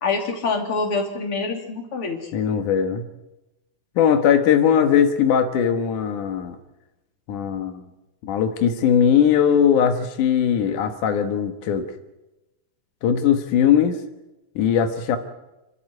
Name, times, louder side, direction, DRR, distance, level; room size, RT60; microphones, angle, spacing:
voice 1, 0.0-2.3, left 4 dB, 45° left, 3 dB, 3.7 m, -25 dB
voice 2, 2.3-3.1 4.0-6.6 7.3-7.8 8.2-11.8 13.0-14.0 14.6-15.2, left 8 dB, 90° left, 7 dB, 2.9 m, -19 dB
28.0 x 12.5 x 9.7 m, 1.0 s
omnidirectional pair, 3.5 m